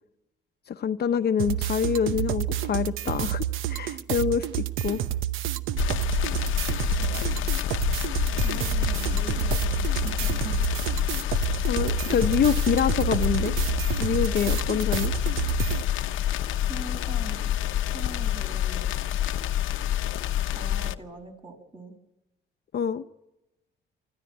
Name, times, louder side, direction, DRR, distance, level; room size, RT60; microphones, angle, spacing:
voice 1, 0.7-5.0 11.7-13.6 14.0-15.1 22.7-23.0, left 7 dB, 55° left, 0.9 m, -26 dB
sound 1, 1.4-15.8, right 12 dB, 90° right, 0.8 m, -29 dB
sound 2, 5.8-20.9, left 12 dB, 85° left, 0.9 m, -27 dB
voice 2, 6.8-7.3 8.4-10.6 16.7-17.5 17.9-18.9 20.5-22.0, right 2 dB, 25° right, 6.7 m, -42 dB
25.0 x 14.0 x 9.5 m
cardioid pair, 90°, 20 cm